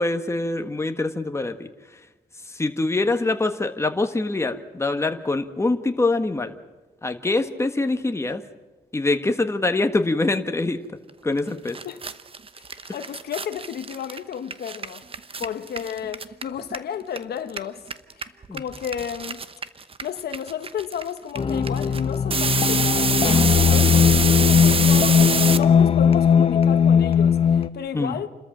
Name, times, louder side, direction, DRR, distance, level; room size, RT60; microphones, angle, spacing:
voice 1, 0.0-1.7 2.5-6.5 7.0-8.4 8.9-10.8 11.2-11.8 18.5-18.6 27.9-28.2, left 2 dB, 15° left, 1.5 m, -24 dB
sound 1, 11.4-11.5 11.7-17.2 17.5-25.6, right 5 dB, 35° right, 1.0 m, -26 dB
voice 2, 12.5-15.0 15.4-17.8 18.2-19.4 20.0-28.3, left 8 dB, 75° left, 1.1 m, -33 dB
sound 2, 21.4-27.7, left 7 dB, 35° left, 0.9 m, -18 dB
29.0 x 13.5 x 7.5 m
cardioid pair, 105°, 17 cm